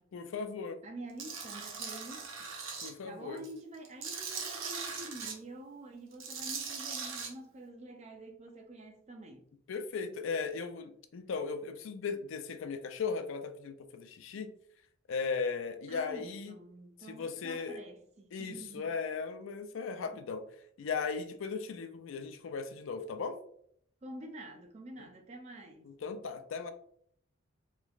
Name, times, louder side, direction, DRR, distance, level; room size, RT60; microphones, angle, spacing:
voice 1, 0.1-0.8 2.8-3.4 9.7-14.5 15.1-16.5 17.0-17.8 18.3-20.4 20.8-23.4 26.0-26.7, left 5 dB, 70° left, 0.4 m, -37 dB
voice 2, 0.8-2.5 3.0-9.5 15.9-18.9 24.0-25.9, right 1 dB, 30° right, 0.5 m, -48 dB
Tools, 1.2-2.9 3.4-5.3 6.1-7.3, right 5 dB, 70° right, 0.7 m, -40 dB
3.1 x 3.0 x 2.3 m
head